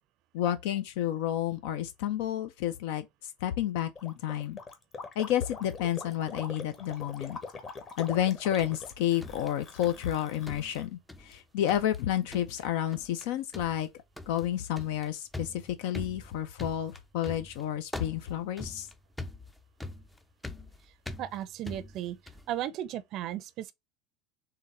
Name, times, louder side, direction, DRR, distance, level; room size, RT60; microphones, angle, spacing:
voice 1, 0.3-4.6 5.2-7.4 8.0-13.9 14.3-18.9, left 11 dB, 75° left, 0.6 m, -30 dB
Gurgling, 4.0-10.9, left 4 dB, 30° left, 1.0 m, -43 dB
sound 1, 8.2-10.2 10.5-11.4 11.7-12.0 12.3-12.7 12.9-13.3 13.5-22.5, left 2 dB, 5° left, 0.4 m, -43 dB
voice 2, 21.2-22.2 22.5-23.7, right 12 dB, 45° right, 0.5 m, -35 dB
3.9 x 3.3 x 4.2 m
supercardioid pair, 140°, 0 cm